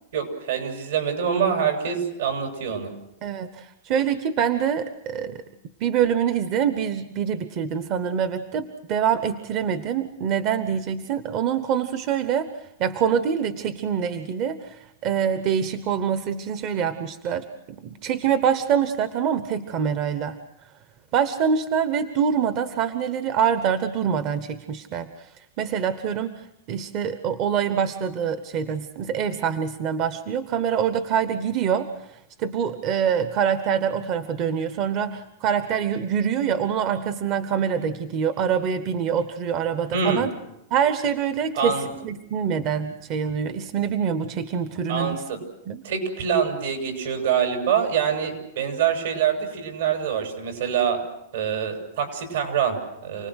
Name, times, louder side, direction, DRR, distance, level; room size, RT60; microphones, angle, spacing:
voice 1, 0.1-2.9 39.9-40.2 41.5-41.9 44.9-45.4 45.8-51.0 51.3-53.3, right 7 dB, 80° right, 4 dB, 7.1 m, -25 dB
voice 2, 3.2-5.4 5.8-20.4 21.1-40.3 40.7-45.2 45.7-45.8, right 8 dB, 40° right, 10 dB, 1.0 m, -25 dB
29.0 x 19.5 x 6.4 m, 0.82 s
supercardioid pair, 150°, 0 cm